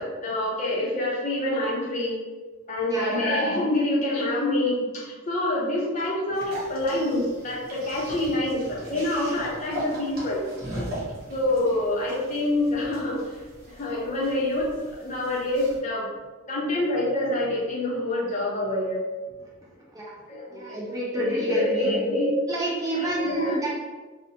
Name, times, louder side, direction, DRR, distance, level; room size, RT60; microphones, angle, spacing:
voice 1, 0.0-2.2 2.7-10.4 11.3-13.2 13.7-16.1 16.5-19.0 20.3-20.8 21.1-22.4 22.9-23.7, left 1 dB, 35° left, -4 dB, 0.6 m, -26 dB
voice 2, 2.9-3.2 19.9-20.1 20.5-21.9 22.5-23.7, right 2 dB, 15° right, -5 dB, 0.3 m, -30 dB
sound 1, 6.3-15.8, equal, 45° right, 0.7 m, -39 dB
2.6 x 2.0 x 2.7 m, 1.3 s
head